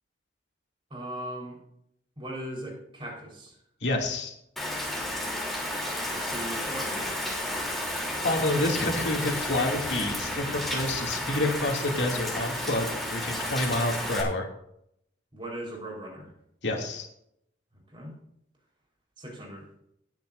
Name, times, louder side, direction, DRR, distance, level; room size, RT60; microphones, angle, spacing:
voice 1, 0.9-1.6 2.2-3.6 5.0-5.2 6.1-7.2 15.3-16.3 17.9-18.1 19.2-19.7, right 1 dB, 25° right, -2 dB, 4.4 m, -39 dB
voice 2, 3.8-4.4 8.2-14.5 16.6-17.1, left 2 dB, 70° left, 1 dB, 2.5 m, -28 dB
Rain, 4.6-14.2, left 1 dB, ahead, 3.1 m, -32 dB
19.5 x 9.2 x 2.6 m, 0.73 s
head